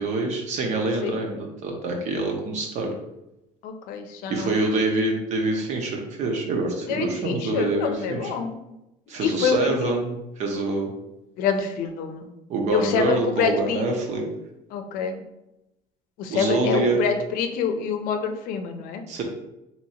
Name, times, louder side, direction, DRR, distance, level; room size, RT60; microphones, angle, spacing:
voice 1, 0.0-2.9 4.3-8.3 9.1-10.9 12.5-14.2 16.3-17.0 19.1-19.2, right 2 dB, 55° right, 2 dB, 0.9 m, -25 dB
voice 2, 3.6-4.5 6.9-8.6 9.2-9.9 11.4-12.3 12.7-13.8 14.7-15.2 16.2-19.0, left 6 dB, 75° left, 7 dB, 0.6 m, -26 dB
3.0 x 2.8 x 4.2 m, 0.91 s
cardioid pair, 150°, 15 cm